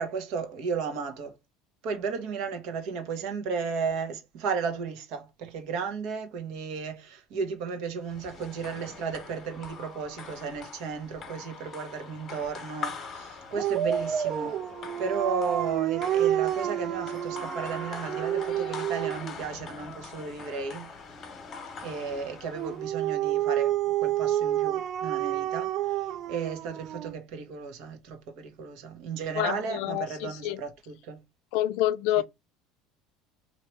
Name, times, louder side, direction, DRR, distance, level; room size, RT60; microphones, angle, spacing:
voice 1, 0.0-1.3 1.8-14.6 15.0-20.9 21.8-31.2 32.2-32.3, right 5 dB, 60° right, 1.1 m, -34 dB
sound 1, 8.0-22.9, left 5 dB, 30° left, 1.1 m, -43 dB
Dog, 13.6-19.4 22.6-27.1, right 11 dB, 40° right, 0.3 m, -29 dB
voice 2, 29.4-30.6 31.5-32.2, left 13 dB, 70° left, 0.4 m, -27 dB
3.0 x 2.8 x 4.5 m
cardioid pair, 140°, 0 cm